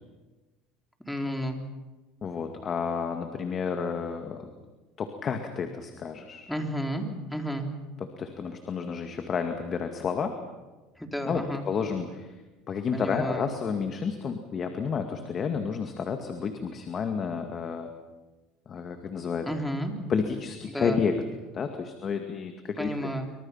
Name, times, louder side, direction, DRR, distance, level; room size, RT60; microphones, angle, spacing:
voice 1, 1.1-1.6 6.5-7.7 11.0-11.6 12.9-13.5 19.4-19.9 20.7-21.0 22.8-23.3, equal, 5° left, 3 dB, 3.6 m, -32 dB
voice 2, 2.2-4.5 5.0-6.5 8.2-10.4 11.3-12.3 12.7-17.9 18.7-19.5 20.1-21.2 21.5-22.9, left 6 dB, 35° left, 6 dB, 2.2 m, -31 dB
26.5 x 24.5 x 5.8 m, 1.2 s
supercardioid pair, 110°, 0 cm